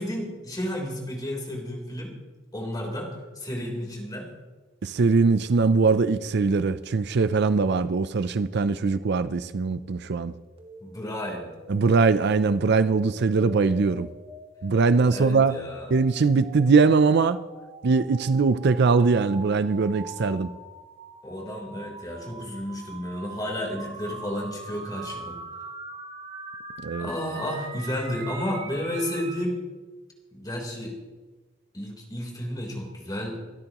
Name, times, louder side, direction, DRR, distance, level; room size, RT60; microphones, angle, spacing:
voice 1, 0.0-2.1 2.5-4.3 10.8-11.5 15.1-15.9 21.2-25.4 27.0-29.6 30.3-30.9 31.7-33.4, left 1 dB, 20° left, 3.7 m, -32 dB
voice 2, 4.8-10.3 11.7-14.1 14.6-15.6 15.9-17.4 17.8-20.5 26.8-27.1, right 4 dB, 60° right, 0.5 m, -21 dB
sound 1, 10.6-29.5, right 3 dB, 30° right, 1.6 m, -42 dB
25.5 x 12.5 x 3.0 m
head